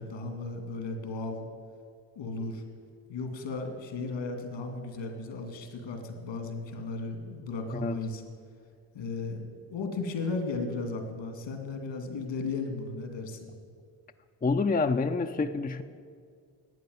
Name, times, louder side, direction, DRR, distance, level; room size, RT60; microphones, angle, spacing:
voice 1, 0.0-1.5 2.2-2.6 3.1-8.2 8.9-13.5, left 3 dB, 75° left, 5 dB, 2.7 m, -35 dB
voice 2, 14.4-15.8, left 4 dB, 20° left, 7 dB, 0.7 m, -27 dB
12.5 x 8.9 x 9.5 m, 2.1 s
supercardioid pair, 60°, 46 cm